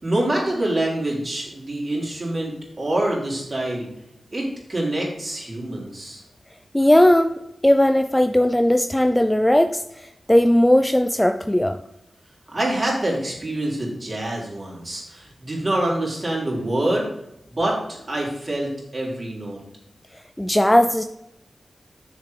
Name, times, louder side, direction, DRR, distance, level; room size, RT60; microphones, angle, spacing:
voice 1, 0.0-3.9 4.3-6.2 12.5-17.1 17.5-19.6, right 1 dB, 35° right, -3 dB, 3.7 m, -26 dB
voice 2, 6.7-7.3 7.6-11.8 20.4-21.0, left 1 dB, 10° left, 7 dB, 0.4 m, -17 dB
7.1 x 6.7 x 5.0 m, 0.82 s
wide cardioid pair, 90°, 0 cm